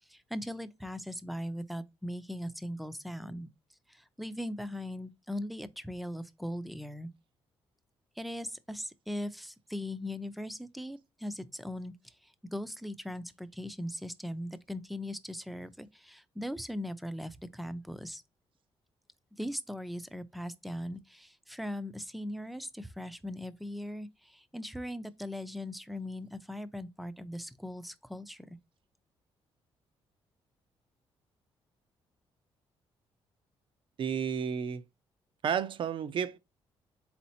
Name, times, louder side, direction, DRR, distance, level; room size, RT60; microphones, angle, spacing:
voice 1, 0.1-3.5 3.9-7.1 8.2-11.9 12.5-18.2 19.4-28.5, left 1 dB, ahead, 0.5 m, -39 dB
voice 2, 34.0-34.8 35.4-36.4, right 7 dB, 55° right, 0.5 m, -31 dB
4.3 x 3.9 x 2.7 m
cardioid pair, 90°, 10 cm